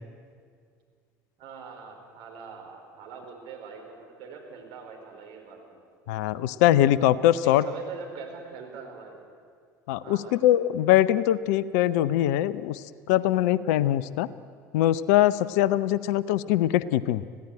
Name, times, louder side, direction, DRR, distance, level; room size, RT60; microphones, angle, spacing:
voice 1, 1.4-5.8 7.4-9.2 10.0-10.4, right 5 dB, 55° right, 1 dB, 4.9 m, -42 dB
voice 2, 6.1-7.6 9.9-14.3 14.7-17.2, left 13 dB, 60° left, 18 dB, 0.6 m, -22 dB
25.0 x 16.0 x 8.8 m, 2.1 s
figure-of-eight pair, 65°, 10 cm